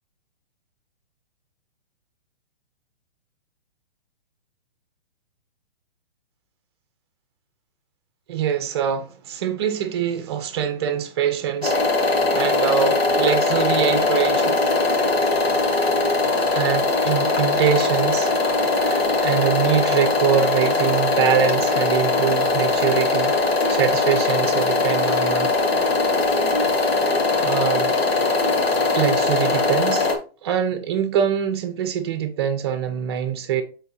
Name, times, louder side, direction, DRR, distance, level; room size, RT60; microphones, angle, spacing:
voice 1, 8.3-14.6 15.5-15.6 16.5-18.3 18.7-23.3 23.7-25.5 27.4-28.0 28.9-30.1 30.4-33.6, right 8 dB, 25° right, 0.7 m, -24 dB
sound 1, 11.6-30.1, left 3 dB, 90° left, 1.6 m, -20 dB
8.9 x 3.8 x 2.7 m
hypercardioid pair, 170°, 30 cm